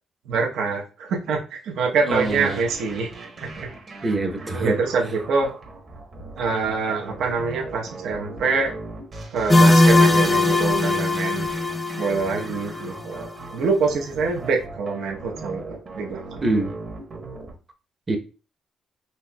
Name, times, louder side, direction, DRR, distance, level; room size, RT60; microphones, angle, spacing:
voice 1, 0.3-3.1 3.4-3.7 4.5-5.5 6.4-8.7 9.3-11.5 12.0-16.4, right 4 dB, 80° right, 1 dB, 0.8 m, -25 dB
voice 2, 2.0-2.6 4.0-4.8 16.4-16.7 18.1-18.2, right 2 dB, 25° right, 5 dB, 0.7 m, -24 dB
sound 1, 2.1-17.5, right 2 dB, 45° right, 1.0 m, -39 dB
sound 2, 9.5-13.2, left 2 dB, 20° left, 0.4 m, -19 dB
4.3 x 2.9 x 2.2 m, 0.34 s
cardioid pair, 90°, 0 cm